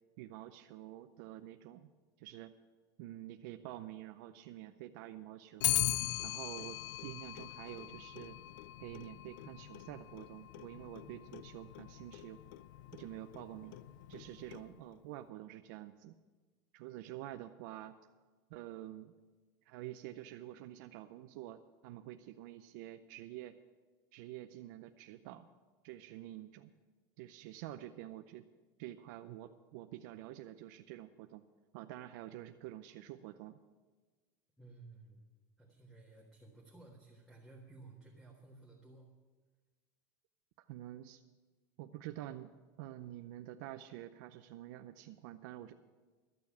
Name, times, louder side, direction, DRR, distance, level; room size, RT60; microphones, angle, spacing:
voice 1, 0.2-1.9 2.2-2.5 3.0-5.8 6.2-8.4 8.8-12.4 12.9-13.8 14.1-16.2 16.7-18.0 18.5-19.1 19.7-23.6 24.1-25.5 25.8-26.7 27.2-28.4 28.8-31.4 31.7-33.6 40.7-41.2 41.8-42.5 42.8-45.7, right 13 dB, 70° right, 7 dB, 0.6 m, -48 dB
Clock, 5.6-15.0, left 16 dB, 85° left, 0.5 m, -40 dB
voice 2, 34.6-35.2 35.6-39.1, right 3 dB, 5° left, -2 dB, 1.5 m, -56 dB
13.5 x 6.9 x 8.4 m, 1.3 s
supercardioid pair, 155°, 10 cm